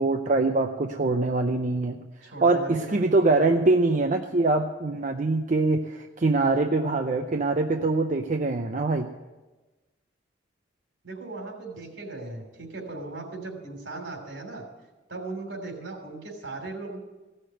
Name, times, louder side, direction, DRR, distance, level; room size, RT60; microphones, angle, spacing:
voice 1, 0.0-2.0 2.4-9.1, right 3 dB, 40° right, 5 dB, 0.6 m, -23 dB
voice 2, 2.2-3.1 11.0-14.6 15.1-17.0, right 2 dB, 75° right, 2 dB, 3.2 m, -38 dB
16.5 x 6.5 x 8.9 m, 1.2 s
head